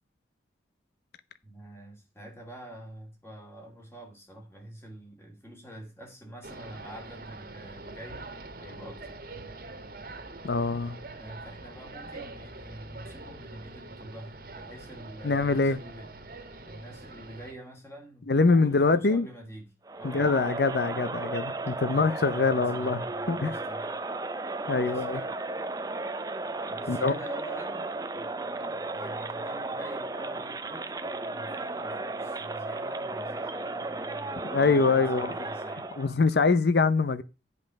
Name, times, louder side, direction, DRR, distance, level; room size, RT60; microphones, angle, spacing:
voice 1, 1.4-8.2 8.6-9.2 11.2-16.1 16.6-19.7 19.9-20.3 21.9-24.0 24.8-25.3 26.7-36.1, right 1 dB, 15° left, 2.6 m, -46 dB
sound 1, 6.4-17.5, right 2 dB, 50° right, 1.6 m, -44 dB
voice 2, 10.4-11.0 15.2-15.8 18.3-19.3 20.0-23.6 24.7-25.2 26.9-27.1 34.5-35.4 36.0-37.2, left 4 dB, 60° left, 0.6 m, -24 dB
Crowd, 19.8-36.1, right 2 dB, 20° right, 0.5 m, -34 dB
9.4 x 5.4 x 6.4 m
head